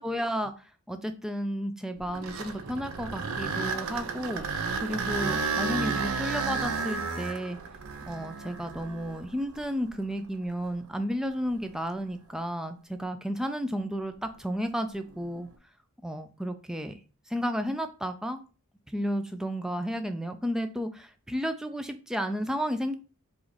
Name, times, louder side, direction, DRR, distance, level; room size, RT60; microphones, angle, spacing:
voice 1, 0.0-7.6 8.1-15.5 16.0-17.0 17.3-18.4 18.9-23.0, equal, 5° right, 7 dB, 0.3 m, -32 dB
sound 1, 2.0-10.0 10.6-10.7 11.4-11.6 15.1-15.5, right 4 dB, 75° right, 0.5 m, -32 dB
4.5 x 2.5 x 4.0 m, 0.36 s
head